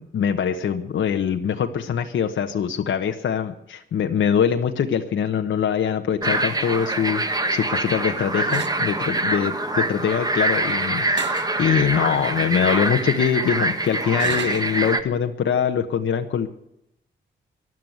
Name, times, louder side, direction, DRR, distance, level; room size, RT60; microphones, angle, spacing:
voice 1, 0.0-11.3 11.6-16.5, left 8 dB, 80° left, 5 dB, 1.1 m, -23 dB
sound 1, 6.2-15.0, right 2 dB, 20° right, 1.5 m, -24 dB
sound 2, 8.5-8.8 11.2-11.5 12.1-12.2 14.2-14.7, right 9 dB, 65° right, 0.6 m, -33 dB
15.5 x 11.0 x 7.8 m, 0.79 s
cardioid pair, 110°, 20 cm